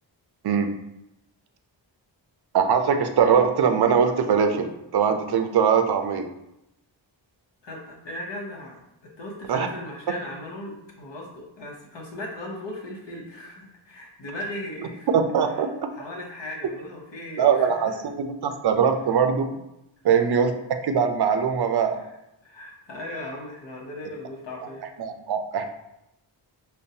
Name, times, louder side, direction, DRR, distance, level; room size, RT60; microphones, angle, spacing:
voice 1, 2.5-6.3 9.5-9.7 15.1-15.9 17.4-19.4 20.0-20.5 20.8-22.0 25.0-25.6, right 7 dB, 60° right, 6 dB, 0.5 m, -21 dB
voice 2, 7.6-8.8 9.2-15.1 15.5-15.7 15.9-17.7 22.4-24.9, left 1 dB, 65° left, -1 dB, 0.9 m, -37 dB
5.2 x 2.2 x 2.7 m, 0.86 s
wide cardioid pair, 110°, 46 cm